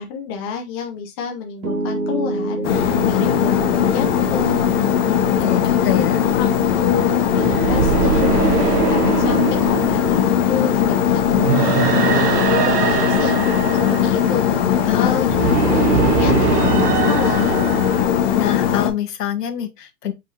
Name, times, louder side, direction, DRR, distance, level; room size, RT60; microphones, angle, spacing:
voice 1, 0.0-4.7 5.5-5.8 6.3-6.5 6.8-13.6 13.9-17.6, left 6 dB, 15° left, 0.5 m, -29 dB
Piano, 1.6-13.8, right 2 dB, 70° right, 1.9 m, -31 dB
sound 1, 2.6-18.9, left 9 dB, 40° left, 0.9 m, -19 dB
voice 2, 5.1-6.2 14.8-15.2 18.3-20.1, left 10 dB, 85° left, 1.3 m, -25 dB
sound 2, 6.8-18.0, right 7 dB, 85° right, 1.2 m, -22 dB
5.2 x 3.8 x 2.7 m
hypercardioid pair, 150°, 46 cm